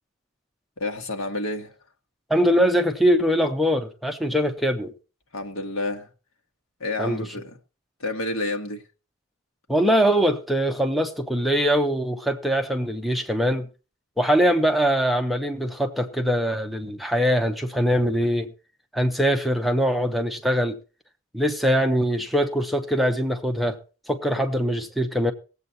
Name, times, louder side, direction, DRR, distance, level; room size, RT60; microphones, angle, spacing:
voice 1, 0.8-1.7 5.3-6.1 6.8-7.6 8.0-8.8, left 2 dB, 75° left, 1.7 m, -29 dB
voice 2, 2.3-4.9 7.0-7.3 9.7-13.7 14.2-18.5 18.9-20.8 21.3-23.8 24.1-25.3, equal, ahead, 0.8 m, -22 dB
18.5 x 8.1 x 4.1 m
head